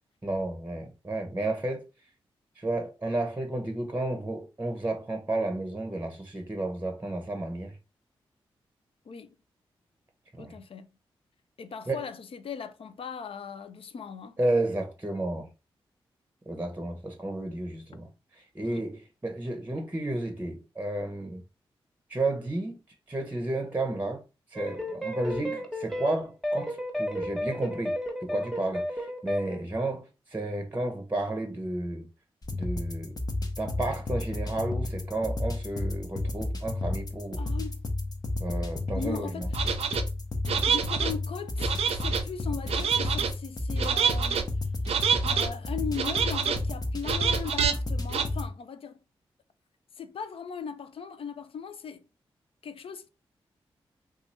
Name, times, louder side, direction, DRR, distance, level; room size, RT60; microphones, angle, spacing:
voice 1, 0.2-1.8 2.6-7.8 10.3-10.5 11.9-12.0 14.4-15.5 16.5-18.1 18.5-21.4 22.1-22.8 23.1-24.2 24.5-32.0 32.5-33.2 33.6-37.4 38.4-39.5, right 2 dB, 20° right, 0.8 m, -32 dB
voice 2, 10.4-10.9 11.6-14.4 18.6-18.9 25.4-25.6 37.4-37.8 38.9-40.0 40.7-44.6 45.2-49.0 50.0-52.0 52.6-53.1, left 6 dB, 65° left, 0.5 m, -39 dB
sound 1, 24.5-29.6, equal, ahead, 1.1 m, -32 dB
sound 2, 32.4-48.5, left 2 dB, 40° left, 0.9 m, -32 dB
sound 3, 39.5-40.0 40.5-41.1 41.6-42.2 42.7-43.3 43.8-44.4 44.9-45.5 45.9-46.6 47.0-47.7 48.1-48.2, right 7 dB, 80° right, 0.5 m, -27 dB
2.8 x 2.4 x 4.1 m
supercardioid pair, 45°, 10 cm